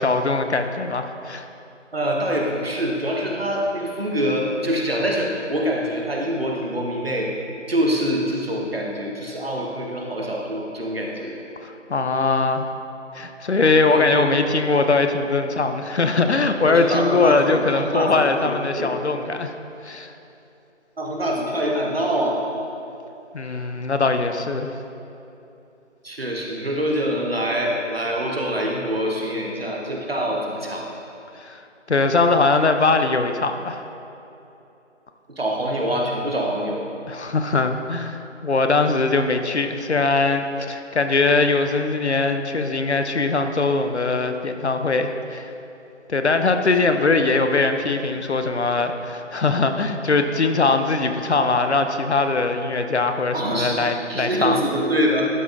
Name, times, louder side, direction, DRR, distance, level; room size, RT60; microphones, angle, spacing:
voice 1, 0.0-1.5 11.6-12.7 13.1-19.5 19.8-20.1 23.3-24.7 31.4-31.6 31.9-33.8 37.1-45.5 46.1-54.6, left 3 dB, 60° left, 7 dB, 0.6 m, -21 dB
voice 2, 1.9-7.3 7.7-11.3 13.9-14.3 16.7-18.9 21.0-22.4 23.4-23.7 26.0-30.8 35.4-36.8 46.8-46.9 53.3-53.8 54.1-55.3, equal, 50° right, -1 dB, 1.1 m, -25 dB
12.0 x 4.3 x 3.6 m, 2.8 s
figure-of-eight pair, 175°, 37 cm